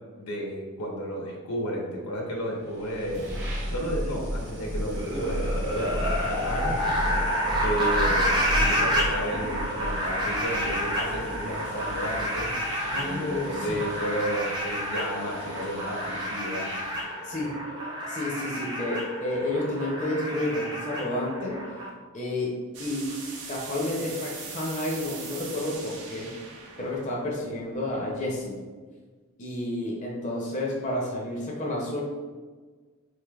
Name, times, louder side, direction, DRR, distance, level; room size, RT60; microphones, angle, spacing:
voice 1, 0.2-3.3 3.7-6.8 7.6-12.5 12.9-16.7, equal, 85° left, -1 dB, 0.9 m, -32 dB
sound 1, 2.5-17.1, equal, 55° right, 0.9 m, -35 dB
sound 2, 4.9-21.9, equal, 20° right, 0.6 m, -29 dB
voice 2, 8.5-8.9 12.9-13.8 17.2-17.6 18.1-21.6 22.1-23.2 23.5-26.3 26.8-28.6 29.4-32.0, left 1 dB, 35° left, -3 dB, 0.5 m, -31 dB
sound 3, 22.7-28.4, right 4 dB, 90° right, 0.7 m, -41 dB
4.3 x 3.2 x 2.3 m, 1.4 s
head